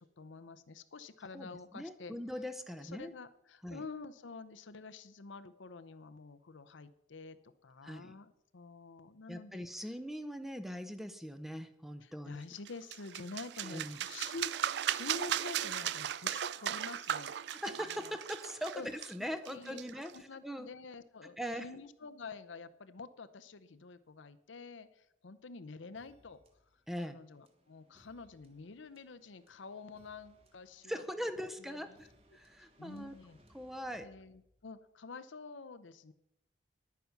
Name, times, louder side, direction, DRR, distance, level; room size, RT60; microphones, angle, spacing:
voice 1, 0.0-2.1 2.8-7.4 7.6-9.6 12.0-17.3 17.8-18.1 18.7-18.9 19.4-19.8 20.1-26.4 27.0-31.0 31.7-31.8 32.6-33.4 34.0-36.1, left 4 dB, 85° left, 12 dB, 0.7 m, -48 dB
voice 2, 1.3-3.1 3.6-3.8 7.8-8.1 9.3-12.4 13.6-14.0 17.5-20.1 20.4-20.7 21.4-21.7 26.9-27.2 30.8-33.2 33.5-34.1, equal, ahead, 10 dB, 0.7 m, -41 dB
sound 1, 12.6-20.2, right 10 dB, 60° right, 0.3 m, -37 dB
sound 2, 25.9-34.8, equal, 30° right, 1.4 m, -68 dB
11.0 x 9.3 x 5.9 m, 0.81 s
head